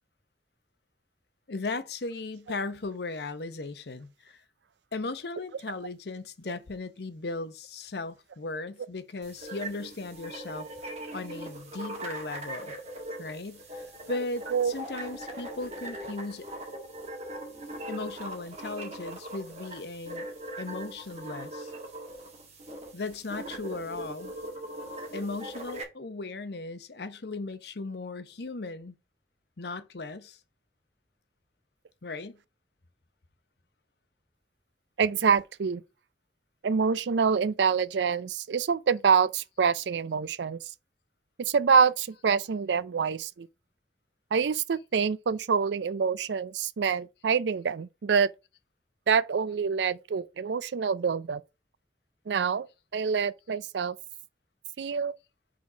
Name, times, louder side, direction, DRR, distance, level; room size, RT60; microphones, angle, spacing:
voice 1, 1.5-4.4 4.9-10.7 11.1-12.7 13.2-16.4 17.9-20.3 20.6-21.7 22.9-24.3 25.1-28.9 29.6-30.4 32.0-32.4, left 3 dB, 65° left, 0.8 m, -37 dB
sound 1, 9.2-25.8, right 1 dB, 40° right, 1.8 m, -40 dB
voice 2, 35.0-35.8 36.6-40.7 41.4-43.5 44.3-48.3 49.1-51.4 52.3-52.7 52.9-54.0 54.8-55.1, right 6 dB, 75° right, 0.4 m, -26 dB
5.2 x 4.0 x 5.9 m
head